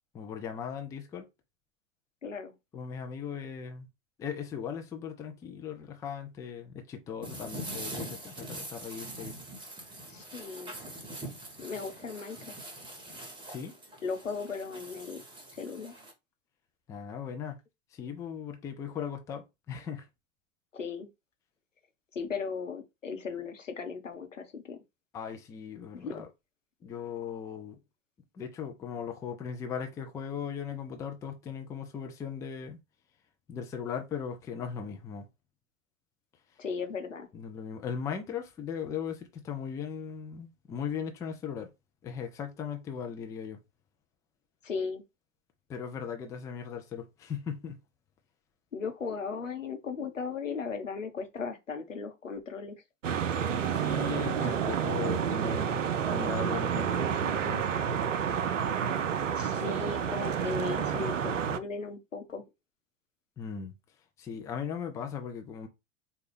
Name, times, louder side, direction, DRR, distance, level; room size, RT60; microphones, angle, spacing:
voice 1, 0.1-1.3 2.7-3.9 4.2-9.4 13.5-13.7 16.9-17.6 17.9-20.1 25.1-26.3 26.8-27.8 28.3-32.8 33.5-35.3 37.3-41.7 42.0-43.6 45.7-47.8 53.7-55.8 56.0-57.7 63.4-63.7 64.2-65.7, left 7 dB, 10° left, 0.4 m, -38 dB
voice 2, 2.2-2.5 10.1-10.7 11.6-12.5 14.0-15.2 15.5-15.9 20.7-21.1 22.1-24.8 25.9-26.1 36.6-37.3 44.6-45.0 48.7-52.8 59.4-62.4, left 5 dB, 80° left, 0.9 m, -37 dB
sound 1, 7.2-16.1, right 1 dB, 15° right, 1.0 m, -43 dB
sound 2, 53.0-61.6, right 8 dB, 80° right, 0.5 m, -29 dB
4.1 x 2.3 x 3.3 m
figure-of-eight pair, 90°, 37 cm